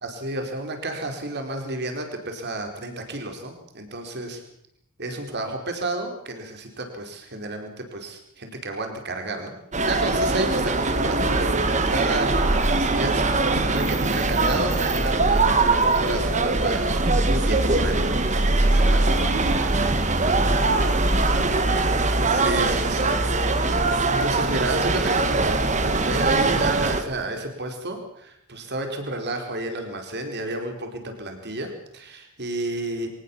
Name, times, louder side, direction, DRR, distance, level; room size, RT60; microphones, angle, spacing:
voice 1, 0.0-4.4 5.0-9.5 9.9-19.1 22.2-23.2 23.9-33.1, right 2 dB, 50° right, 4 dB, 4.6 m, -31 dB
sound 1, 9.7-27.0, right 2 dB, 35° right, 1.7 m, -21 dB
voice 2, 18.6-23.1, right 3 dB, 80° right, 4 dB, 3.2 m, -38 dB
23.5 x 19.0 x 7.3 m, 0.71 s
head